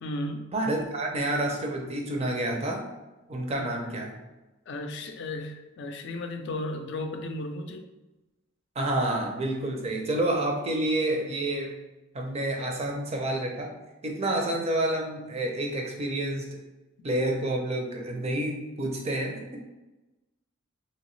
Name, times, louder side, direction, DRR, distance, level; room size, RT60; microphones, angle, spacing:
voice 1, 0.0-0.5 3.6-3.9 4.7-7.9, left 1 dB, 55° left, 5 dB, 0.4 m, -35 dB
voice 2, 0.5-2.8 3.3-4.1 8.8-11.7 12.1-13.7 14.0-16.6 17.0-19.6, right 1 dB, 30° right, 1 dB, 0.5 m, -29 dB
3.0 x 2.9 x 3.1 m, 1.1 s
head